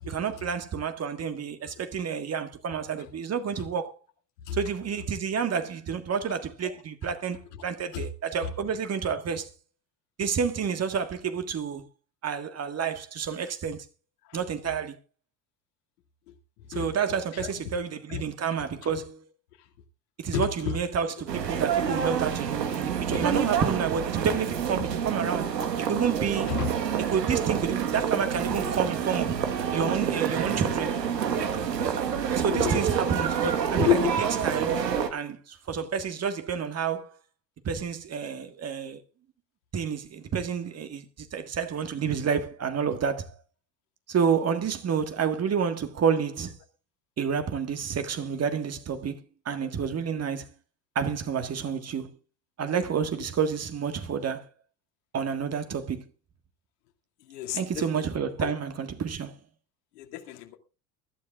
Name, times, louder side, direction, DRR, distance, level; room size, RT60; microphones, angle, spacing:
voice 1, 0.1-4.0 4.5-9.5 10.2-11.8 12.2-13.8 14.3-15.0 16.7-19.2 20.2-25.5 25.8-26.6 27.0-29.4 29.7-31.0 32.4-34.0 34.4-34.8 35.1-37.1 37.6-39.0 39.7-43.3 44.1-46.6 47.2-49.2 49.4-50.5 50.9-52.2 52.6-54.5 55.1-56.1 57.5-59.3, right 6 dB, 30° right, 1.6 m, -29 dB
voice 2, 20.3-20.8 23.1-23.2 26.5-26.7 32.5-32.7 33.7-34.1 57.3-57.6 57.9-58.0 58.4-58.5 60.0-60.5, left 10 dB, 70° left, 2.4 m, -29 dB
sound 1, 21.3-35.1, right 8 dB, 85° right, 1.5 m, -28 dB
23.0 x 12.5 x 2.4 m
hypercardioid pair, 75°, 48 cm